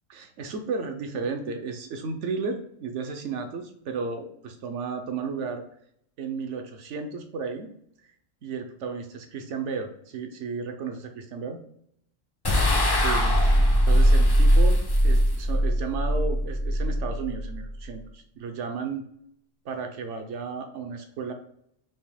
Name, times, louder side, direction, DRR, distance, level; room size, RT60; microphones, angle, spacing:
voice 1, 0.1-5.6 6.2-7.7 8.4-11.6 13.0-19.0 19.6-21.3, right 5 dB, 70° right, 6 dB, 1.0 m, -33 dB
sound 1, 12.4-17.8, equal, 30° left, 0.5 m, -21 dB
5.5 x 3.5 x 2.2 m, 0.71 s
omnidirectional pair, 1.3 m